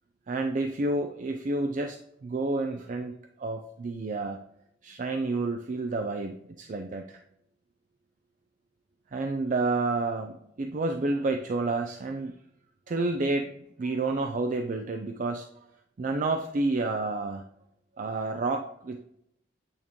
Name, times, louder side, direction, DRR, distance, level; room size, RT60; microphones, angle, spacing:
voice 1, 0.3-3.1 3.4-4.4 4.8-7.2 9.1-12.3 12.9-13.5 13.8-15.5 16.0-17.4 18.0-19.0, right 3 dB, 45° right, 5 dB, 0.4 m, -29 dB
8.7 x 3.6 x 3.0 m, 0.76 s
head